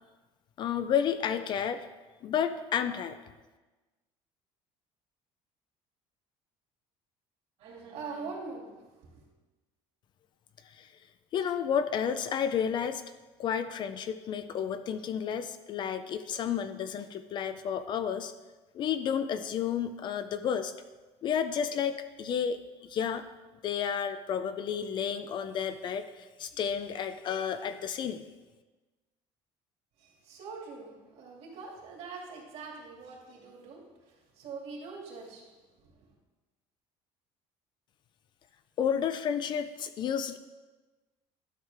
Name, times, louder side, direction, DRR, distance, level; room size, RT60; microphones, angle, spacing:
voice 1, 0.6-1.9 2.2-3.2 10.7-10.9 11.3-13.0 13.4-18.3 18.7-20.7 21.2-22.6 22.9-23.2 23.6-28.2 38.8-40.4, left 8 dB, 40° left, 11 dB, 0.4 m, -31 dB
voice 2, 7.6-9.3 30.0-35.5 35.7-36.0, right 4 dB, 60° right, -1 dB, 2.3 m, -44 dB
12.0 x 6.4 x 3.4 m, 1.2 s
cardioid pair, 165°, 12 cm